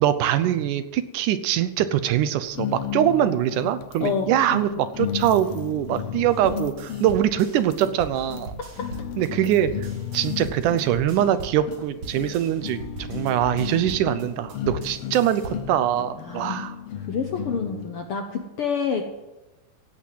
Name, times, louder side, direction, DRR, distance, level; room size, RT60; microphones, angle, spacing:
voice 1, 0.0-8.5 9.2-9.7 10.1-12.8 13.1-16.8, right 11 dB, 75° right, 12 dB, 2.2 m, -23 dB
sound 1, 2.6-18.0, left 9 dB, 90° left, 1.3 m, -34 dB
sound 2, 6.3-15.8, right 4 dB, 50° right, 3.1 m, -40 dB
voice 2, 16.2-16.6 17.1-19.0, left 6 dB, 65° left, 4 dB, 1.4 m, -27 dB
17.0 x 8.7 x 7.6 m, 1.1 s
omnidirectional pair, 3.8 m